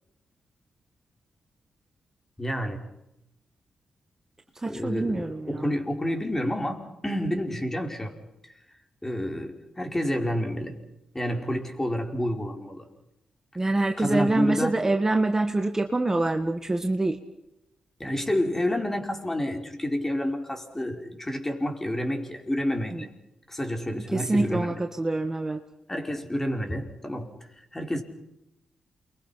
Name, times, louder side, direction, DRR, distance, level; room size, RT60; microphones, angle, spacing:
voice 1, 2.4-2.9 4.6-8.2 8.4-8.5 9.0-10.8 11.1-12.9 14.0-14.8 18.0-23.1 23.5-24.8 25.9-27.3 27.7-28.0, equal, 15° left, 3 dB, 5.4 m, -29 dB
voice 2, 4.6-5.7 13.6-17.2 22.9-23.0 24.1-25.6, right 2 dB, 25° right, 5 dB, 1.8 m, -25 dB
29.0 x 23.5 x 5.9 m, 0.86 s
cardioid pair, 60°, 2 cm